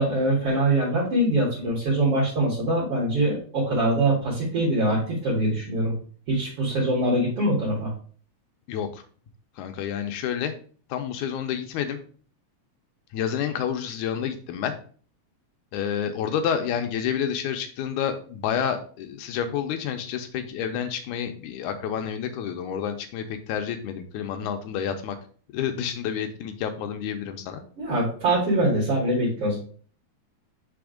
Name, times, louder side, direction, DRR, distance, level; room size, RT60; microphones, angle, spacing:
voice 1, 0.0-5.9 6.3-7.9 27.8-29.6, right 1 dB, 55° right, -7 dB, 2.8 m, -23 dB
voice 2, 8.7-9.0 9.6-10.5 10.9-12.0 13.1-14.8 15.7-25.2 25.5-27.6, left 8 dB, 85° left, 7 dB, 2.1 m, -29 dB
5.5 x 3.5 x 5.0 m, 0.43 s
omnidirectional pair, 3.4 m